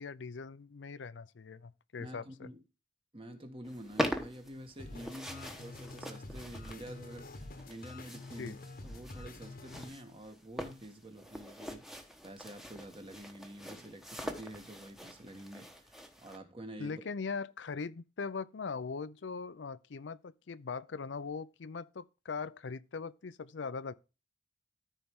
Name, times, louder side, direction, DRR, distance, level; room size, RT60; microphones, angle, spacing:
voice 1, 0.0-2.5 8.4-8.5 16.8-23.9, left 5 dB, 85° left, 0.5 m, -40 dB
voice 2, 2.0-2.6 3.1-7.3 7.7-8.6 8.8-17.0, right 1 dB, 30° right, 1.5 m, -48 dB
sound 1, 3.6-16.4, equal, ahead, 1.1 m, -43 dB
sound 2, 4.8-9.9, left 2 dB, 55° left, 1.1 m, -47 dB
13.5 x 4.5 x 3.6 m
head